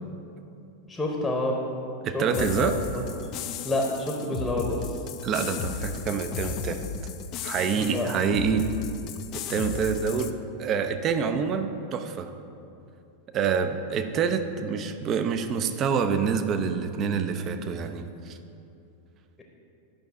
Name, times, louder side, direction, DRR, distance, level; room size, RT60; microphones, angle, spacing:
voice 1, 0.9-1.6 2.1-3.0 3.6-4.9 7.7-8.1, left 1 dB, 10° left, 1 dB, 0.9 m, -29 dB
voice 2, 2.0-2.8 5.2-6.8 7.4-8.6 9.3-12.3 13.3-18.4, right 6 dB, 30° right, 8 dB, 0.5 m, -27 dB
sound 1, 2.3-10.3, left 7 dB, 40° left, 0.4 m, -35 dB
10.5 x 5.6 x 3.7 m, 2.6 s
figure-of-eight pair, 90°, 0 cm